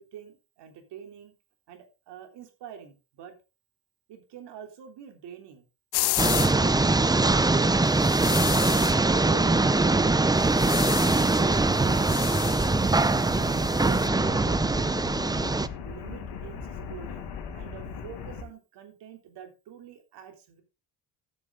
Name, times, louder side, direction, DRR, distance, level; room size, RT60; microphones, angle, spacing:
voice 1, 0.0-1.3 1.7-3.3 4.1-5.6 6.1-7.9 8.7-10.2 10.7-12.1 12.7-15.2 15.8-20.6, right 8 dB, 80° right, 5 dB, 3.4 m, -45 dB
sound 1, 5.9-6.5 8.0-9.0 10.4-11.4 11.7-14.1, left 18 dB, 70° left, 0.6 m, -32 dB
sound 2, 6.2-15.7, right 3 dB, 10° right, 0.6 m, -22 dB
sound 3, 9.0-18.4, left 6 dB, 90° left, 3.0 m, -40 dB
13.0 x 7.6 x 3.9 m, 0.29 s
cardioid pair, 90°, 40 cm